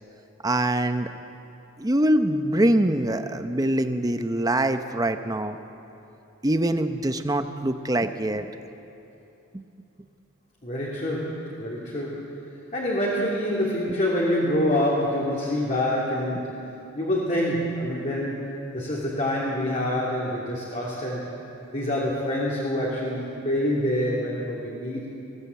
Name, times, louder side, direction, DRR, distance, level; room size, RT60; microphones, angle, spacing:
voice 1, 0.4-1.1 1.8-5.6 6.4-8.5 9.5-9.6, right 1 dB, 20° right, 8 dB, 0.7 m, -24 dB
voice 2, 10.6-12.4 12.7-21.3 21.7-25.1, left 1 dB, 35° left, -5 dB, 2.8 m, -26 dB
21.0 x 16.5 x 8.3 m, 2.9 s
head